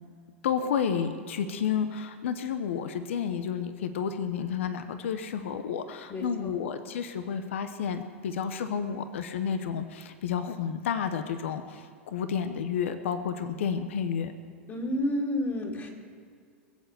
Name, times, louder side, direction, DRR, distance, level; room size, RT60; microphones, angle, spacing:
voice 1, 0.4-14.3, left 7 dB, 75° left, 9 dB, 0.9 m, -31 dB
voice 2, 6.1-6.5 14.7-15.9, left 1 dB, 35° left, -2 dB, 2.9 m, -30 dB
21.5 x 8.2 x 6.8 m, 2.2 s
hypercardioid pair, 95°, 7 cm